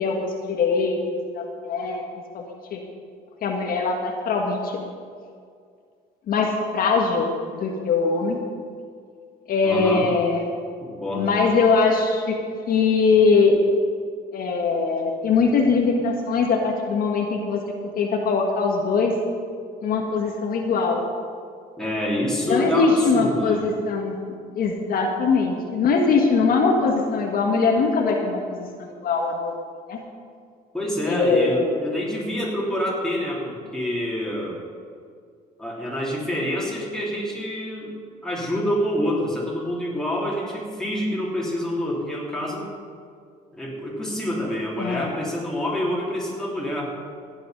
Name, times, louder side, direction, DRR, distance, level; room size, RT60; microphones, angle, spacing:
voice 1, 0.0-2.0 2.3-2.8 3.4-4.7 6.3-7.3 7.5-8.4 9.5-10.5 11.1-12.3 12.7-13.6 14.3-17.6 17.9-19.1 19.8-21.0 22.4-24.1 24.5-29.5 29.9-30.0 31.1-31.6 44.8-45.1, left 4 dB, 60° left, 1 dB, 1.7 m, -21 dB
voice 2, 9.6-10.1 10.8-11.3 21.8-23.6 30.7-34.6 35.6-37.9 38.2-42.7 43.5-46.9, left 1 dB, 5° left, -5 dB, 3.8 m, -27 dB
16.0 x 9.3 x 5.4 m, 2.2 s
cardioid pair, 110°, 17 cm